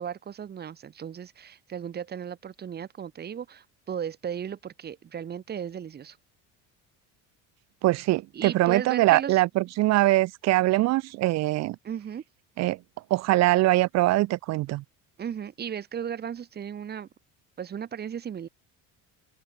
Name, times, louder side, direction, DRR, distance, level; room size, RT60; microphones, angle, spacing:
voice 1, 0.0-6.2 8.3-9.4 11.8-12.2 15.2-17.1 17.6-18.5, right 8 dB, 30° right, 6.4 m, -36 dB
voice 2, 7.8-11.7 12.6-12.8 13.1-14.8, right 18 dB, 50° right, 1.4 m, -22 dB
open air
cardioid pair, 165°, 33 cm